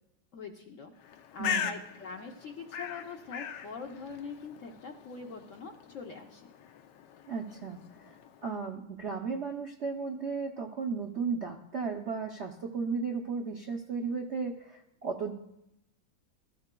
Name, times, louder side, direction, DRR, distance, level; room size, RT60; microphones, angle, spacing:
voice 1, 0.3-0.9 1.3-6.4, left 5 dB, 60° left, 3 dB, 0.9 m, -43 dB
Bird, 1.0-8.6, left 8 dB, 75° left, 1.3 m, -40 dB
voice 2, 1.4-1.7 7.3-8.2 8.4-15.3, right 5 dB, 60° right, 1 dB, 0.7 m, -35 dB
17.5 x 12.5 x 2.2 m, 0.85 s
omnidirectional pair, 2.0 m